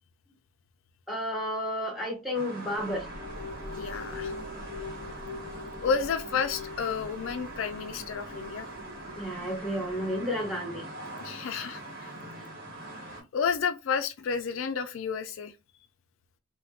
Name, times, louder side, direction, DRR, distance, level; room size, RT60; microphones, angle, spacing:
voice 1, 1.1-3.1 9.2-10.9, equal, ahead, 1.0 m, -32 dB
sound 1, 2.3-13.2, right 2 dB, 45° right, 1.4 m, -43 dB
sound 2, 2.8-10.3, left 3 dB, 75° right, 1.1 m, -43 dB
voice 2, 3.7-4.3 5.8-8.7 11.2-12.1 13.3-15.5, left 6 dB, 70° left, 0.4 m, -31 dB
3.4 x 2.2 x 2.3 m
head